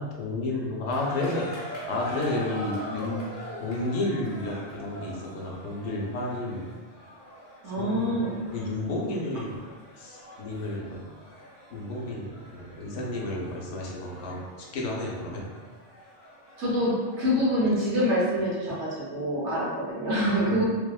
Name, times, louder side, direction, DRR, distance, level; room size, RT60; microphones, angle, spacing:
voice 1, 0.0-1.5 1.9-3.3 3.6-6.7 7.8-8.1 8.5-9.6 10.0-11.1 11.7-14.4 14.7-15.4 20.4-20.6, left 2 dB, 80° left, -2 dB, 0.9 m, -31 dB
sound 1, 0.9-17.8, equal, 50° left, 0.8 m, -43 dB
voice 2, 7.6-8.3 16.6-20.6, equal, 75° right, -7 dB, 1.1 m, -26 dB
2.7 x 2.0 x 2.3 m, 1.3 s
omnidirectional pair, 1.2 m